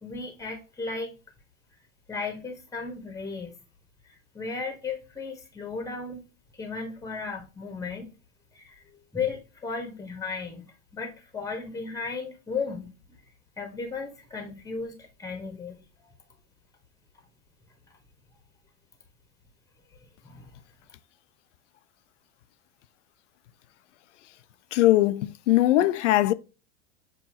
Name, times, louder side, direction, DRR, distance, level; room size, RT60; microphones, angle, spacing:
voice 1, 0.0-1.1 2.1-3.5 4.3-6.2 6.6-8.1 8.5-8.7 9.1-12.9 13.6-14.9 15.2-15.8 20.2-20.4, left 4 dB, 10° left, 1.1 m, -35 dB
voice 2, 24.7-26.3, left 15 dB, 70° left, 0.5 m, -20 dB
7.1 x 2.7 x 2.7 m
hypercardioid pair, 100°, 38 cm